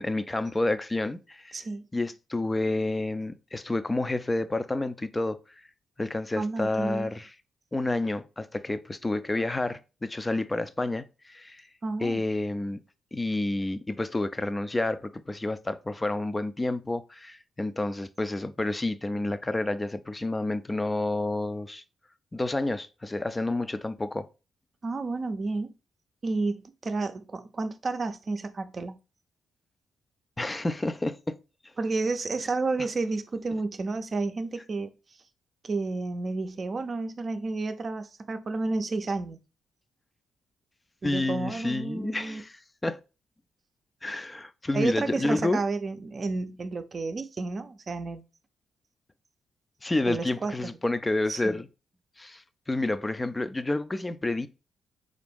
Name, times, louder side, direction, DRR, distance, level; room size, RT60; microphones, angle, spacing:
voice 1, 0.0-1.6 1.9-5.4 6.0-7.3 7.7-11.7 12.0-12.8 13.1-21.8 22.3-24.3 30.4-31.4 41.0-43.0 44.0-45.6 49.8-51.7 52.2-54.5, left 2 dB, 20° left, 0.4 m, -29 dB
voice 2, 1.5-1.8 6.4-7.1 11.8-12.2 24.8-25.7 26.2-29.0 31.8-34.9 35.6-39.4 41.0-42.4 44.7-48.2 50.1-50.7 51.3-51.6, right 3 dB, 45° right, 0.5 m, -31 dB
4.0 x 2.5 x 3.5 m
supercardioid pair, 50°, 0 cm